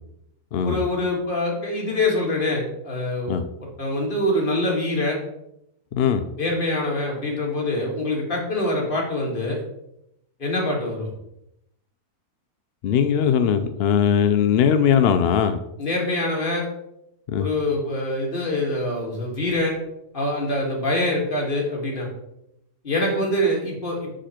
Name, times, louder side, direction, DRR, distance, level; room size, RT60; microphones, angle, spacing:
voice 1, 0.6-5.2 6.4-9.6 10.4-11.1 15.8-16.7 17.4-19.8 20.1-22.1 22.8-24.1, left 1 dB, 35° left, -2 dB, 1.9 m, -25 dB
voice 2, 5.9-6.2 12.8-15.6 17.3-17.5, left 8 dB, 80° left, 9 dB, 0.5 m, -20 dB
6.4 x 5.0 x 4.3 m, 0.81 s
omnidirectional pair, 1.6 m